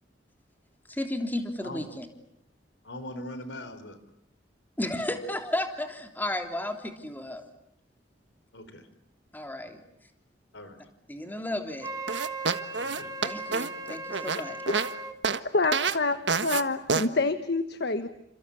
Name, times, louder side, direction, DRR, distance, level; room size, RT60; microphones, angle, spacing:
voice 1, 0.9-2.0 4.8-7.4 9.3-9.8 11.1-11.9 13.2-14.6, left 1 dB, 10° left, 5 dB, 3.2 m, -33 dB
voice 2, 2.8-4.0 8.5-8.9 10.5-10.8 12.8-13.1, left 1 dB, 85° left, 11 dB, 4.1 m, -41 dB
Wind instrument woodwind instrument, 11.8-15.2, right 3 dB, 20° right, 1.7 m, -37 dB
sound 1, 12.1-14.9 15.2-15.4 15.7-16.0 16.3-16.6 16.9-17.1, right 5 dB, 75° right, 1.5 m, -27 dB
voice 3, 15.5-18.1, left 3 dB, 65° left, 10 dB, 1.3 m, -27 dB
30.0 x 27.5 x 7.1 m, 0.77 s
head